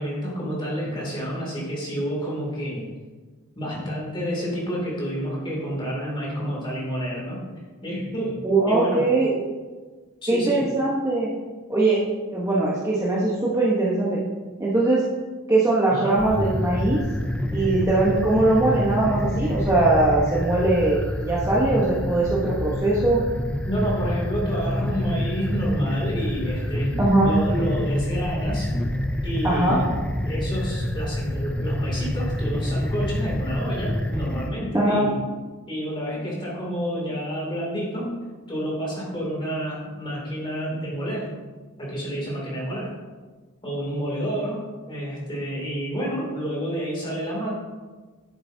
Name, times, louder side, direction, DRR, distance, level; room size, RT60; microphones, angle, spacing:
voice 1, 0.0-2.8 3.6-7.4 7.8-9.0 10.2-10.7 15.9-16.1 23.7-28.8 29.2-29.9 30.3-35.1 35.7-38.2 38.5-41.3 41.8-42.9 43.6-44.6 44.9-47.5, equal, 20° left, -4 dB, 2.7 m, -29 dB
voice 2, 8.4-9.4 10.3-11.3 11.7-12.0 12.3-14.2 14.6-15.0 15.5-17.0 17.5-23.2 27.0-27.3 29.4-29.8 34.7-35.0, right 2 dB, 15° right, -6 dB, 1.0 m, -21 dB
sound 1, 16.1-34.5, left 1 dB, 5° left, 0.3 m, -27 dB
10.5 x 7.9 x 2.8 m, 1.4 s
head